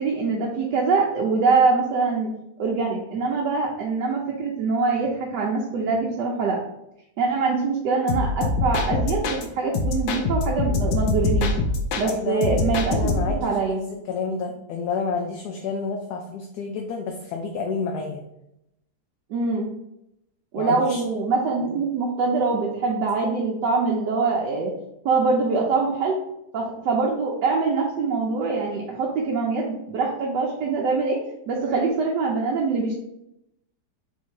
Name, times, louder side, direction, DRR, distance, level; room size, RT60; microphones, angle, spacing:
voice 1, 0.0-2.3 2.6-6.6 7.2-11.6 12.0-14.0 19.3-19.7 20.5-24.7 25.0-26.2 26.5-31.2 31.5-33.0, right 4 dB, 75° right, -2 dB, 1.3 m, -24 dB
sound 1, 8.1-9.4 9.7-12.1 12.4-13.4, left 3 dB, 90° left, 1.3 m, -24 dB
voice 2, 12.0-12.6 12.9-13.5 14.1-18.2 20.6-21.0, left 4 dB, 70° left, 2 dB, 1.0 m, -29 dB
4.0 x 2.8 x 4.5 m, 0.83 s
omnidirectional pair, 1.9 m